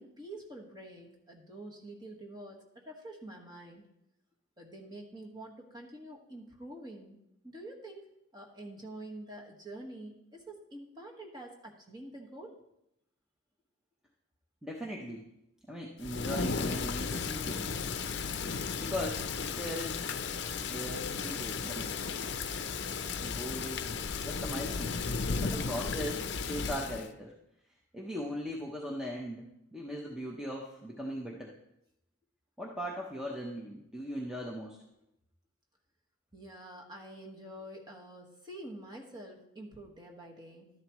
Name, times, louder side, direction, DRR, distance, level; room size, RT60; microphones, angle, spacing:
voice 1, 0.0-3.8 4.6-7.2 7.4-12.5 36.3-40.7, right 1 dB, 20° right, -1 dB, 1.5 m, -47 dB
voice 2, 14.6-15.3 15.7-17.7 18.8-20.2 20.7-22.0 23.2-24.0 24.2-25.0 25.4-27.3 27.9-31.5 32.6-34.8, equal, 5° right, -2 dB, 0.8 m, -39 dB
Thunder / Rain, 16.0-27.1, left 5 dB, 55° left, 0.6 m, -35 dB
12.5 x 11.0 x 3.1 m, 0.83 s
head